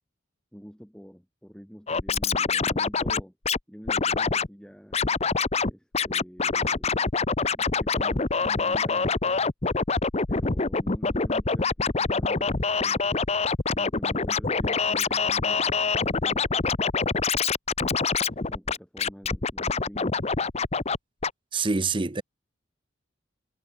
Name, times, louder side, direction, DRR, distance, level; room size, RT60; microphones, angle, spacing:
voice 1, 0.5-3.4 3.7-5.0 5.7-7.1 7.6-9.4 10.3-13.3 13.7-16.8 18.3-20.1, equal, 5° left, 4.7 m, -46 dB
Scratching (performance technique), 1.9-3.6 3.9-4.5 4.9-5.7 5.9-21.0 21.2-21.3, left 4 dB, 35° left, 0.9 m, -25 dB
voice 2, 21.5-22.2, right 4 dB, 25° right, 0.6 m, -25 dB
head